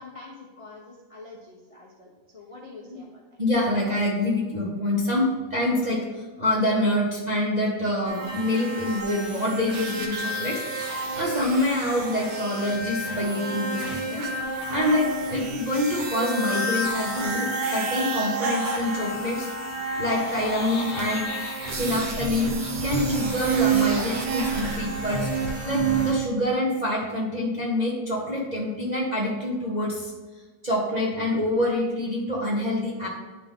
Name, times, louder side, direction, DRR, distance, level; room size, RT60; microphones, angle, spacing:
voice 1, 0.0-3.2, left 3 dB, 35° left, -3 dB, 0.5 m, -45 dB
voice 2, 3.4-10.6 11.1-14.3 14.7-19.5 20.0-21.3 21.7-30.1 30.6-33.1, left 1 dB, 35° right, -4 dB, 0.7 m, -26 dB
sound 1, 8.1-26.1, right 3 dB, 65° right, 1.6 m, -29 dB
Laughter, 19.7-25.0, left 3 dB, 55° left, 1.1 m, -41 dB
9.7 x 3.6 x 3.6 m, 1.3 s
omnidirectional pair, 2.0 m